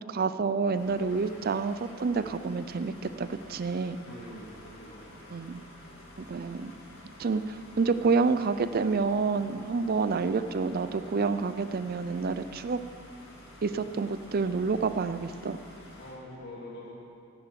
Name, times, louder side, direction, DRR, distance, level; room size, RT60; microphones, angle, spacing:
voice 1, 0.1-4.0 5.3-5.6 6.3-6.7 7.2-12.8 13.6-15.6, right 4 dB, 45° right, 12 dB, 0.4 m, -28 dB
sound 1, 0.7-16.1, left 1 dB, 65° left, 3.4 m, -50 dB
voice 2, 4.0-5.2 9.4-9.7 12.4-12.5 16.0-16.9, left 1 dB, 45° left, -6 dB, 2.7 m, -45 dB
11.5 x 7.6 x 7.4 m, 2.6 s
head